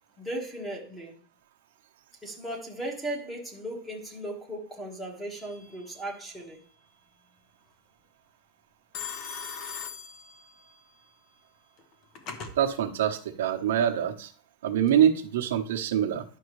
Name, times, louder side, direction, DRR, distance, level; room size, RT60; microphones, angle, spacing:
voice 1, 0.2-1.1 2.2-6.6, right 1 dB, 5° left, 1 dB, 1.6 m, -37 dB
Telephone, 5.3-5.9 8.9-10.8 11.8-12.6, left 6 dB, 30° left, 1.0 m, -40 dB
voice 2, 12.6-14.3 14.6-16.2, right 9 dB, 80° right, 3 dB, 1.0 m, -25 dB
10.5 x 6.3 x 3.2 m, 0.43 s
supercardioid pair, 175°, 0 cm